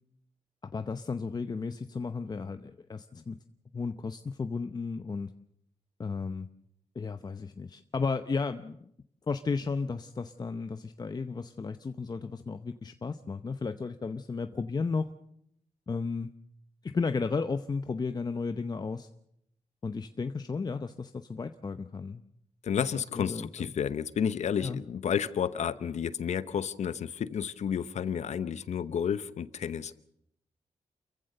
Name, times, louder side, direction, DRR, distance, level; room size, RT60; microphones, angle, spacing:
voice 1, 0.6-3.4 3.7-5.3 6.0-6.5 6.9-8.9 9.3-15.1 15.9-16.3 16.8-19.1 19.8-22.2 23.2-23.7 24.6-24.8, left 4 dB, 35° left, 9 dB, 0.8 m, -34 dB
voice 2, 22.6-29.9, left 8 dB, 75° left, 15 dB, 0.9 m, -31 dB
28.5 x 15.0 x 6.6 m, 0.73 s
cardioid pair, 100°, 12 cm